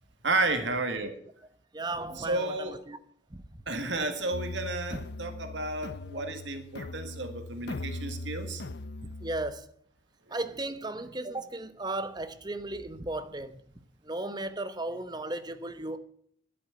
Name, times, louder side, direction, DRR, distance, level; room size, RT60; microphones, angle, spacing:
voice 1, 0.2-1.2 2.2-2.8 3.7-8.6, right 2 dB, 80° right, 1.9 m, -32 dB
voice 2, 1.7-3.0 3.3-3.6 6.1-6.3 9.2-9.7 10.3-13.6 14.0-16.0, right 2 dB, 25° right, 0.9 m, -35 dB
sound 1, 4.3-9.5, left 2 dB, 65° left, 0.6 m, -40 dB
12.0 x 7.7 x 9.3 m
head